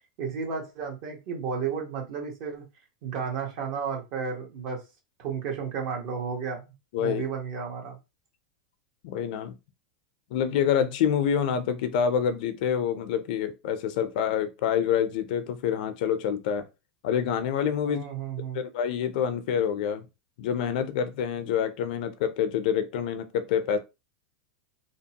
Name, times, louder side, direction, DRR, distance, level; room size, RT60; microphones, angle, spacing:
voice 1, 0.2-2.6 3.0-4.8 5.2-6.7 7.0-8.0 17.8-18.6, right 6 dB, 55° right, 1.2 m, -33 dB
voice 2, 9.0-9.6 10.3-16.6 17.0-18.0 18.5-20.1 20.4-23.8, left 8 dB, 65° left, 0.5 m, -27 dB
2.9 x 2.0 x 2.8 m
supercardioid pair, 135°, 5 cm